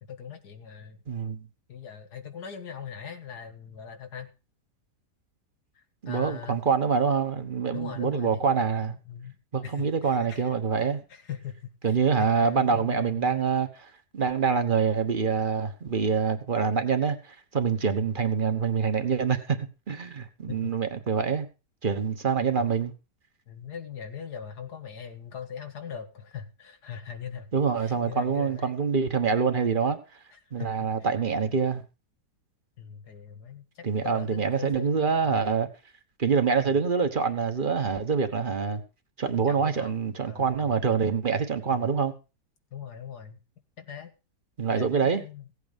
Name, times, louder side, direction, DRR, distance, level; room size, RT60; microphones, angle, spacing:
voice 1, 0.0-1.0 1.7-4.3 5.8-6.6 7.7-9.3 9.6-10.5 11.1-13.4 17.8-18.1 20.5-20.7 22.3-22.5 23.5-27.5 27.8-28.7 30.3-30.9 32.8-35.5 36.6-36.8 39.4-41.1 41.7-41.9 42.7-43.4 43.8-44.1 44.7-45.5, left 8 dB, 90° left, 2.1 m, -41 dB
voice 2, 1.1-1.4 6.0-8.9 9.5-11.0 11.8-21.5 21.8-22.9 27.5-30.0 30.5-31.8 33.8-35.7 36.2-38.8 39.2-42.1 44.6-45.2, right 6 dB, 35° right, 1.4 m, -26 dB
16.5 x 8.2 x 5.2 m
omnidirectional pair, 1.7 m